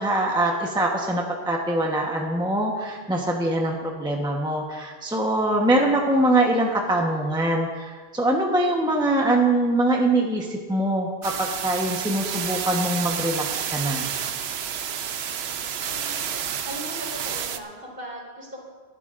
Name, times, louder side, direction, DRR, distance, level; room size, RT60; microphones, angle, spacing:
voice 1, 0.0-14.1, right 1 dB, 5° right, -1 dB, 1.1 m, -23 dB
sound 1, 11.2-17.6, right 8 dB, 75° right, 0.9 m, -30 dB
voice 2, 15.9-16.2 16.6-18.6, equal, 55° right, -4 dB, 3.9 m, -38 dB
20.0 x 13.0 x 2.6 m, 1.5 s
omnidirectional pair, 1.1 m